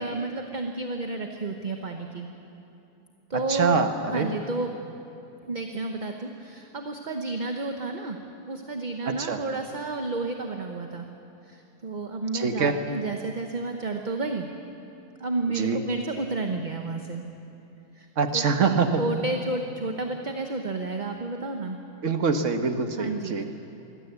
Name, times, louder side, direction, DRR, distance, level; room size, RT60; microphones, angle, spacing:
voice 1, 0.0-2.3 3.3-3.8 4.1-4.7 5.5-11.1 11.4-14.5 15.2-17.2 17.9-18.1 18.3-18.7 19.0-21.8 23.0-23.4, right 3 dB, 35° right, 4 dB, 1.0 m, -31 dB
voice 2, 3.5-4.3 9.0-9.4 12.3-12.8 15.6-15.8 18.2-19.0 22.0-23.4, right 5 dB, 55° right, 7 dB, 1.4 m, -24 dB
23.0 x 16.5 x 8.2 m, 2.9 s
omnidirectional pair, 1.6 m